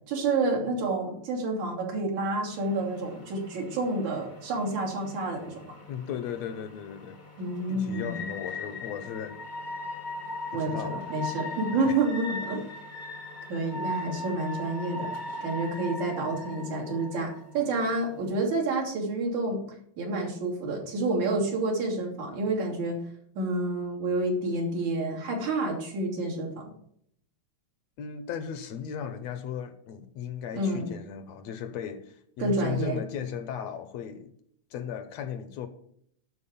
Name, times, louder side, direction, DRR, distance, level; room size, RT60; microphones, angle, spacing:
voice 1, 0.1-5.8 7.4-8.3 10.5-12.6 13.5-15.1 15.4-19.6 20.0-23.1 23.4-26.7 30.5-30.9 32.4-33.0, right 2 dB, 75° right, 4.2 m, -29 dB
sound 1, 2.5-18.5, left 1 dB, 30° left, 0.9 m, -39 dB
voice 2, 5.9-7.2 7.7-9.4 10.5-11.0 11.7-12.0 28.0-34.3 34.7-35.7, left 8 dB, 70° left, 1.9 m, -36 dB
12.5 x 4.8 x 7.2 m
omnidirectional pair, 3.4 m